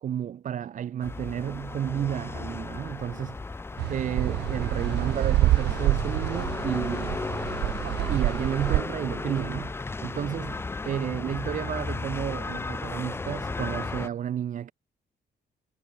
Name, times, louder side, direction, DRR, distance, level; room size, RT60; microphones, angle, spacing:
voice 1, 0.0-3.4 3.9-7.2 8.1-14.7, right 9 dB, 50° right, 1.5 m, -32 dB
sound 1, 1.0-14.1, left 3 dB, 15° left, 0.8 m, -34 dB
sound 2, 3.8-8.8, right 15 dB, 85° right, 0.5 m, -27 dB
cardioid pair, 170°, 17 cm